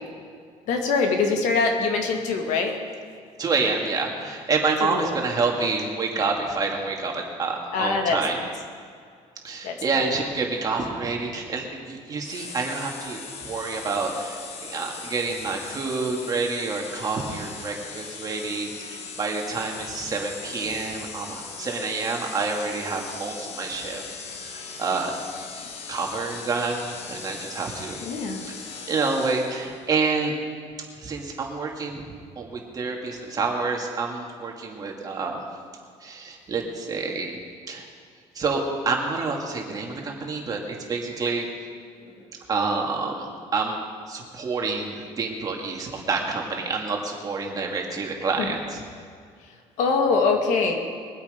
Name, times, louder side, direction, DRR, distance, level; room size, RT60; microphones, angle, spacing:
voice 1, 0.7-2.8 4.9-5.1 7.7-8.2 9.6-9.7 28.0-28.4 48.4-48.5 49.8-50.7, left 4 dB, 85° left, 3 dB, 2.0 m, -23 dB
voice 2, 3.4-8.4 9.4-24.0 24.4-25.1 25.9-28.0 28.5-30.3 31.0-32.0 32.4-35.4 36.0-37.4 37.7-37.9 38.3-41.5 42.5-43.8 44.1-48.8, right 4 dB, 30° right, 0 dB, 2.3 m, -28 dB
sound 1, 12.2-29.8, left 5 dB, 60° left, 1.5 m, -39 dB
22.0 x 8.3 x 5.2 m, 2.2 s
cardioid pair, 140°, 12 cm